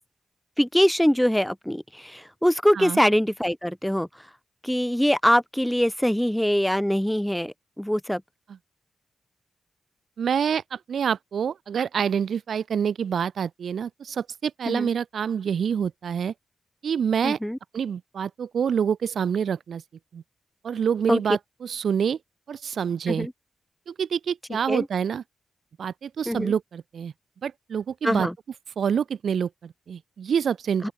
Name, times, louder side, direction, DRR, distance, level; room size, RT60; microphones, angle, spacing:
voice 1, 0.6-4.1 4.6-8.2 14.7-14.9 17.2-17.6 21.1-21.2 23.1-23.3 24.7-24.9 26.3-26.5 28.0-28.3 30.8-30.9, equal, 5° left, 2.4 m, -23 dB
voice 2, 10.2-16.3 16.8-17.4 17.7-19.8 20.1-20.2 20.6-22.2 22.5-23.3 23.9-25.2 25.8-27.1 27.4-28.3 28.8-30.9, right 7 dB, 75° right, 5.6 m, -27 dB
open air
wide cardioid pair, 110°, 0 cm